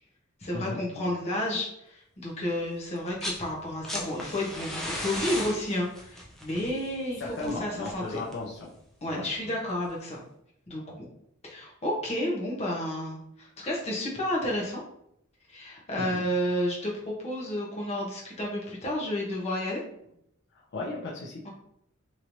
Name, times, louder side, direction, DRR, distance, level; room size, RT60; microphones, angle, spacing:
voice 1, 0.4-8.2 9.0-10.2 10.7-11.0 11.4-14.8 15.5-19.8 21.4-21.5, left 1 dB, 35° left, -3 dB, 0.8 m, -31 dB
sound 1, 3.0-3.4 3.7-8.6 9.8-9.9, left 1 dB, ahead, 0.5 m, -36 dB
voice 2, 7.2-8.7 9.1-9.5 16.0-16.1 20.7-21.5, left 2 dB, 60° left, -3 dB, 0.6 m, -35 dB
3.0 x 3.0 x 2.6 m, 0.74 s
head